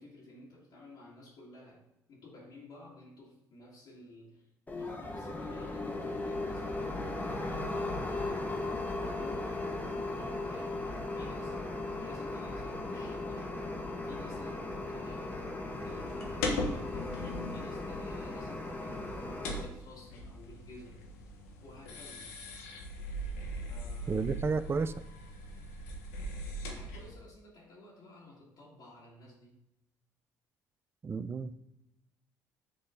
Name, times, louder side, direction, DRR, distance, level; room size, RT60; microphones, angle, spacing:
voice 1, 0.0-1.8 2.1-8.7 8.9-13.8 14.0-21.1 21.6-22.3 23.7-24.2 26.6-29.6, left 2 dB, 60° left, -7 dB, 2.2 m, -53 dB
sound 1, 4.7-19.7, left 2 dB, 20° left, 1.4 m, -37 dB
sound 2, 15.7-27.1, left 1 dB, 85° left, 1.0 m, -40 dB
voice 2, 24.1-25.0 31.0-31.5, right 4 dB, 30° right, 13 dB, 0.5 m, -32 dB
7.9 x 3.8 x 3.8 m, 0.88 s
hypercardioid pair, 65°, 8 cm